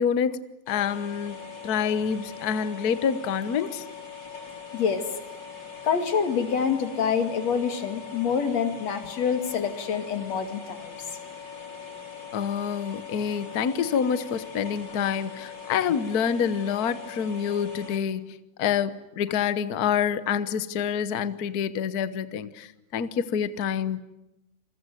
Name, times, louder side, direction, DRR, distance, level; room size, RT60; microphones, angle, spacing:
voice 1, 0.0-1.4 1.6-3.8 12.3-24.0, left 7 dB, 75° left, 0.8 m, -27 dB
sound 1, 0.7-18.0, left 6 dB, 35° left, 4.4 m, -41 dB
voice 2, 4.7-5.1 5.8-11.0, left 6 dB, 60° left, 3.5 m, -26 dB
28.0 x 22.5 x 9.3 m
omnidirectional pair, 3.4 m